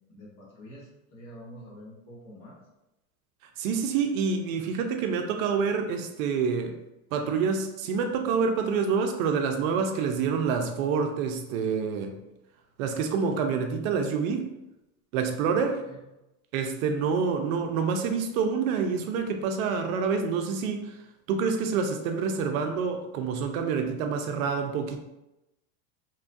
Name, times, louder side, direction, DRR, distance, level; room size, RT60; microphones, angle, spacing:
voice 1, 0.1-2.6 15.3-16.0, equal, 50° left, -4 dB, 1.3 m, -47 dB
voice 2, 3.6-6.8 7.1-12.2 12.8-14.5 15.1-15.8 16.5-21.0 21.3-25.0, right 5 dB, 65° right, 5 dB, 0.5 m, -27 dB
3.0 x 2.2 x 2.5 m, 0.94 s
hypercardioid pair, 105°, 44 cm